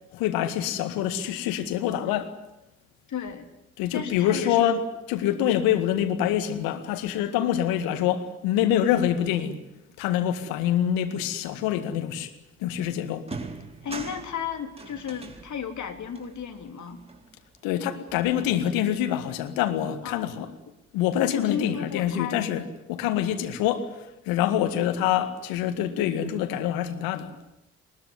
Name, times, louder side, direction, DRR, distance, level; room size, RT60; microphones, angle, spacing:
voice 1, 0.1-2.4 3.8-9.6 10.0-12.3 12.6-13.3 17.6-20.5 20.9-23.9 24.3-27.3, left 10 dB, 70° left, 2.0 m, -25 dB
voice 2, 3.1-3.5 3.9-4.8 13.8-17.0 20.0-20.4 21.1-22.4, left 7 dB, 50° left, 3.2 m, -34 dB
sound 1, 12.6-12.7 13.2-17.7 18.1-19.1, right 3 dB, 15° right, 4.0 m, -43 dB
22.0 x 21.0 x 9.7 m
hypercardioid pair, 45°, 36 cm